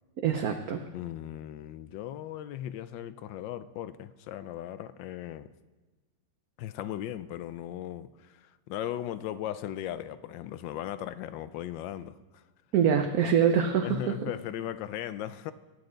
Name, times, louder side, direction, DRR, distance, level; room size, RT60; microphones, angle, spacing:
voice 1, 0.2-0.8 12.7-14.3, right 8 dB, 60° right, 1.1 m, -25 dB
voice 2, 0.9-5.5 6.6-12.4 13.8-15.5, left 12 dB, 80° left, 1.3 m, -37 dB
21.5 x 8.6 x 3.9 m
omnidirectional pair, 2.0 m